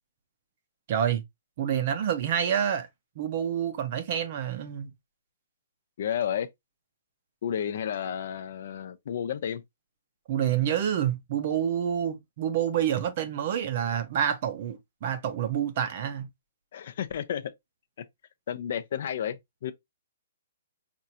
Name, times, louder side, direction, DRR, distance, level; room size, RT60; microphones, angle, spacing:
voice 1, 0.9-1.2 1.6-2.9 3.2-4.9 10.3-16.3, right 9 dB, 35° right, 0.5 m, -28 dB
voice 2, 6.0-6.5 7.4-9.6 16.7-17.4 18.5-19.7, left 9 dB, 45° left, 0.4 m, -31 dB
4.4 x 2.5 x 2.6 m
hypercardioid pair, 175°, 0 cm